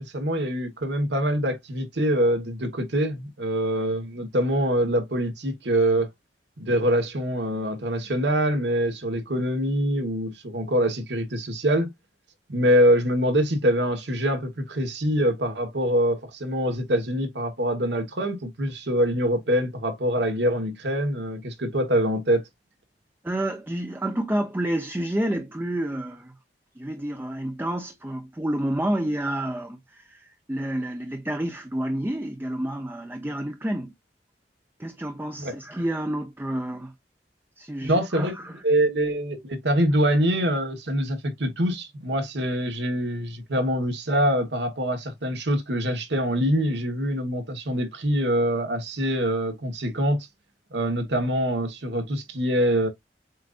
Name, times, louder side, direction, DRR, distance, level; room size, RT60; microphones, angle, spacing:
voice 1, 0.0-6.1 6.6-11.9 12.5-22.4 35.4-35.5 37.8-38.4 38.6-50.3 50.7-52.9, equal, 75° right, 1.3 m, -24 dB
voice 2, 23.2-26.3 26.8-33.9 34.8-36.9 37.6-38.6, right 1 dB, 10° right, 0.5 m, -29 dB
7.5 x 2.6 x 2.4 m
head